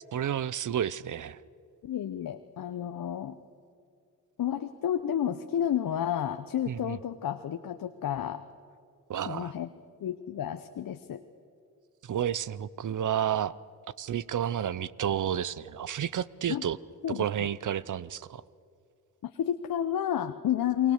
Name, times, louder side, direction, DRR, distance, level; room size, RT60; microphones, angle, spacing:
voice 1, 0.1-1.4 6.7-7.0 9.1-9.5 12.0-13.6 14.0-16.8 17.1-18.4, right 9 dB, 50° right, 20 dB, 0.7 m, -31 dB
voice 2, 1.8-3.4 4.4-8.4 9.3-9.7 10.0-11.2 16.5-16.6 17.0-17.2 19.4-20.9, left 10 dB, 60° left, 8 dB, 1.0 m, -31 dB
28.5 x 21.5 x 6.6 m, 2.3 s
supercardioid pair, 60°, 39 cm